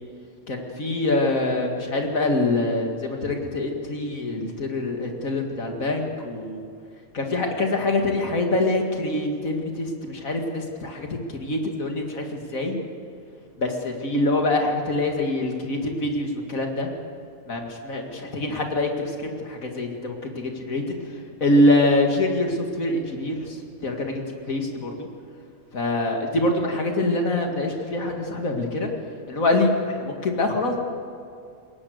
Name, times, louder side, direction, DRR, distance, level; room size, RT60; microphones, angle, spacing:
voice 1, 0.5-6.7 7.1-12.8 13.6-16.9 17.5-21.0 21.4-25.1 25.7-28.9 29.3-30.8, left 2 dB, 75° left, 2 dB, 2.5 m, -25 dB
21.5 x 18.5 x 6.6 m, 2.4 s
omnidirectional pair, 1.5 m